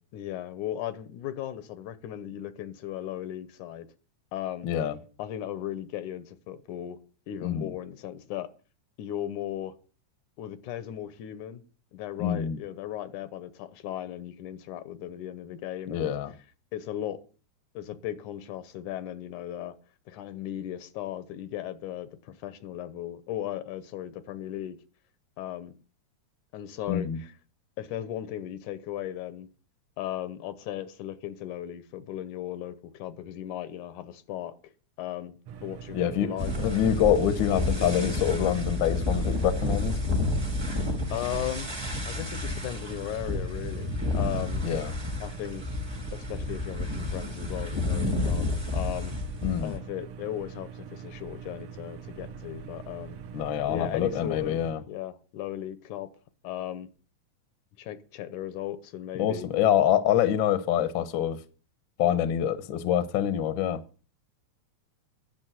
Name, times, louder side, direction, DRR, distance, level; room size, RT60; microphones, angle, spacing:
voice 1, 0.1-3.9 4.3-4.7 5.2-7.0 7.3-8.5 9.0-9.7 10.4-11.6 11.9-16.1 16.7-17.2 17.7-19.7 20.1-24.8 25.4-25.7 26.5-27.3 27.8-29.5 30.0-34.5 35.0-36.8 41.1-41.7 42.0-44.7 45.2-45.7 46.1-48.5 48.7-49.1 49.6-53.2 53.7-54.6 54.9-56.1 56.4-56.9 57.8-59.5, left 12 dB, 90° left, 2.4 m, -36 dB
voice 2, 4.6-5.0 7.4-7.7 12.2-12.6 15.9-16.3 26.9-27.2 35.9-36.3 36.6-40.0 44.6-44.9 49.4-49.7 53.3-54.8 59.2-61.4 62.0-63.8, left 10 dB, 70° left, 1.1 m, -26 dB
sound 1, 35.5-54.7, right 7 dB, 75° right, 1.3 m, -43 dB
sound 2, 36.4-49.8, left 2 dB, 15° right, 1.0 m, -30 dB
10.5 x 6.8 x 7.8 m
omnidirectional pair, 3.5 m